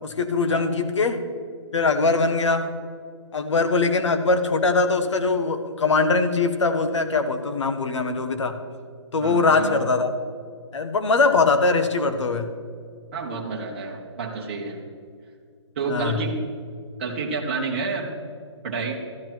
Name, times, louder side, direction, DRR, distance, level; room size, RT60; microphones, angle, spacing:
voice 1, 0.0-1.2 1.7-2.7 3.3-8.5 9.1-10.1 10.7-12.5 15.9-16.2, left 3 dB, 75° left, 9 dB, 1.3 m, -22 dB
voice 2, 9.2-9.8 13.1-14.8 15.8-16.3 17.0-18.1 18.6-19.0, right 4 dB, 25° right, -4 dB, 1.0 m, -29 dB
13.0 x 10.0 x 4.6 m, 2.2 s
hypercardioid pair, 180°, 15 cm